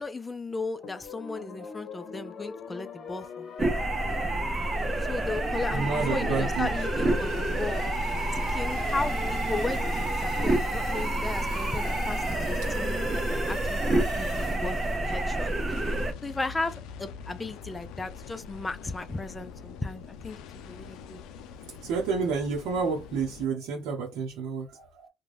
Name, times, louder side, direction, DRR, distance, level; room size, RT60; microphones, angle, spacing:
voice 1, 0.0-3.8 5.1-7.8 8.3-13.8 14.2-15.8 16.2-20.4 20.6-21.2, left 3 dB, 20° left, 0.5 m, -36 dB
sound 1, 0.8-15.0, left 6 dB, 60° left, 0.8 m, -42 dB
sound 2, 3.6-16.1, right 2 dB, 25° right, 0.6 m, -28 dB
voice 2, 5.7-6.7 21.8-25.1, right 5 dB, 85° right, 0.7 m, -30 dB
sound 3, 7.1-23.5, left 6 dB, 85° left, 0.4 m, -45 dB
2.4 x 2.2 x 3.3 m
cardioid pair, 90°, 0 cm